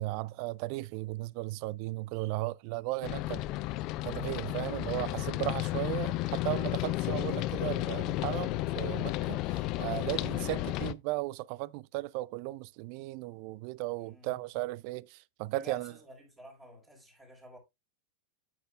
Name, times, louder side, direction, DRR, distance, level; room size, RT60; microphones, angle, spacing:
voice 1, 0.0-3.4 4.0-15.9, right 19 dB, 45° right, 0.4 m, -36 dB
sound 1, 3.0-10.9, left 16 dB, 40° left, 0.4 m, -33 dB
voice 2, 14.0-14.4 15.5-17.6, equal, 15° right, 5.0 m, -51 dB
9.2 x 8.6 x 2.3 m
figure-of-eight pair, 90°, 0 cm